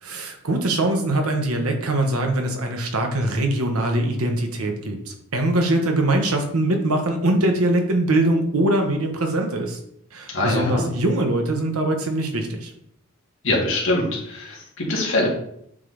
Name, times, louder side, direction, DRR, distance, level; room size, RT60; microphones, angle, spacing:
voice 1, 0.0-9.8 10.1-12.7, right 1 dB, 85° right, 3 dB, 1.1 m, -22 dB
voice 2, 10.3-10.8 13.4-15.3, left 1 dB, 60° left, -2 dB, 1.8 m, -23 dB
7.4 x 3.9 x 3.4 m, 0.72 s
head